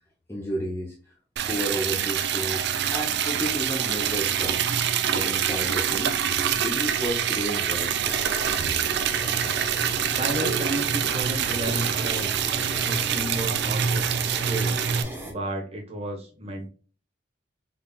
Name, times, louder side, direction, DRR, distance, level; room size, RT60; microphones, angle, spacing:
voice 1, 0.3-1.1 1.5-4.6 5.1-6.2 6.6-8.2, equal, 15° left, -3 dB, 0.6 m, -32 dB
Liquid, 1.4-15.0, right 8 dB, 60° right, 0.4 m, -25 dB
sound 1, 8.0-15.3, equal, 10° right, 0.9 m, -37 dB
voice 2, 10.0-12.3 12.8-14.8 15.2-16.7, right 1 dB, 35° right, 2 dB, 1.1 m, -32 dB
4.0 x 3.3 x 2.2 m, 0.38 s
head